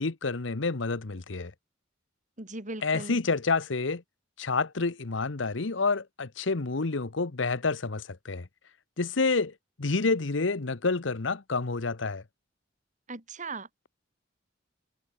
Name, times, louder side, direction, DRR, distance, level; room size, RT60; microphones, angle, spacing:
voice 1, 0.0-1.5 2.8-4.0 4.4-8.5 9.0-9.5 9.8-12.2, left 3 dB, 80° left, 1.0 m, -28 dB
voice 2, 2.4-3.2 13.1-13.7, right 3 dB, 40° right, 4.6 m, -38 dB
head